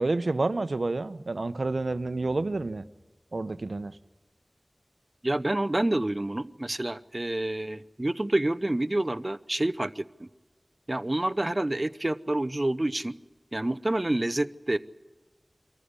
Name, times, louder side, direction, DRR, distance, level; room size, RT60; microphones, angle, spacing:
voice 1, 0.0-2.8 3.3-4.0, right 2 dB, 85° right, 13 dB, 0.8 m, -29 dB
voice 2, 5.2-10.3 10.9-13.1 13.5-14.8, right 1 dB, 40° right, 14 dB, 0.8 m, -28 dB
24.5 x 14.5 x 9.7 m, 1.2 s
wide cardioid pair, 45°, 0 cm